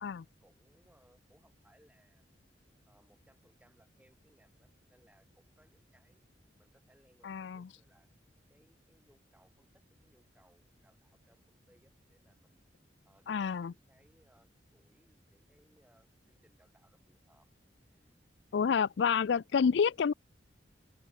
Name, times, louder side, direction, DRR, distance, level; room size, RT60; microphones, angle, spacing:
voice 1, 0.4-2.2 2.9-6.3 6.5-8.1 8.5-12.7 13.0-17.5 17.9-18.2, right 1 dB, 10° right, 6.0 m, -68 dB
voice 2, 7.2-7.7 13.3-13.7 18.5-20.1, left 6 dB, 65° left, 0.4 m, -29 dB
open air
head